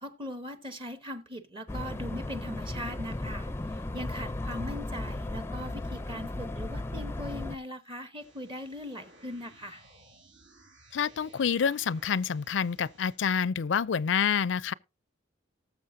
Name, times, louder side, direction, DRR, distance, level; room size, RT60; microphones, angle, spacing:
voice 1, 0.0-9.8, equal, 25° right, 0.9 m, -40 dB
sound 1, 1.7-7.6, left 2 dB, 15° left, 0.5 m, -35 dB
sound 2, 8.2-13.2, right 1 dB, 85° right, 5.9 m, -57 dB
voice 2, 10.9-14.7, left 7 dB, 75° left, 0.4 m, -28 dB
19.0 x 7.2 x 2.6 m
head